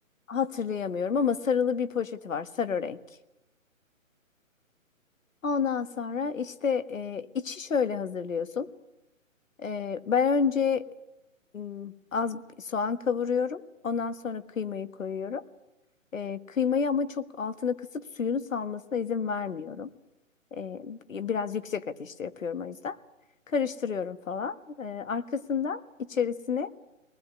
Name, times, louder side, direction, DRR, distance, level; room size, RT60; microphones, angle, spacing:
voice 1, 0.3-3.0 5.4-8.7 9.6-10.8 11.5-15.4 16.1-19.9 20.5-23.0 23.5-26.7, left 6 dB, 75° left, 12 dB, 1.6 m, -30 dB
21.5 x 20.0 x 9.7 m, 0.92 s
figure-of-eight pair, 145°, 40 cm